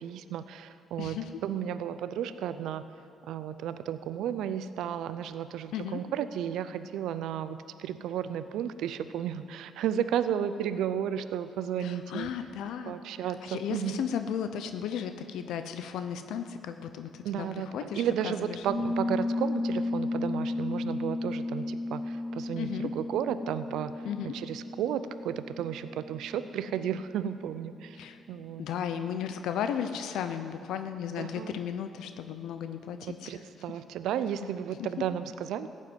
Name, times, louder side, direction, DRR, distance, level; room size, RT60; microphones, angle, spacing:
voice 1, 0.0-2.8 3.2-12.3 12.9-14.0 17.2-28.7 31.2-31.6 33.3-35.7, right 9 dB, 85° right, 12 dB, 0.5 m, -33 dB
voice 2, 1.0-1.4 5.7-6.0 11.8-12.9 13.4-18.6 22.5-22.9 24.0-24.3 28.0-28.2 28.6-33.3 34.4-34.5, left 8 dB, 85° left, 8 dB, 0.7 m, -35 dB
Piano, 18.6-27.1, left 2 dB, 55° right, 2.8 m, -34 dB
15.0 x 7.5 x 9.2 m, 2.5 s
cardioid pair, 90°, 0 cm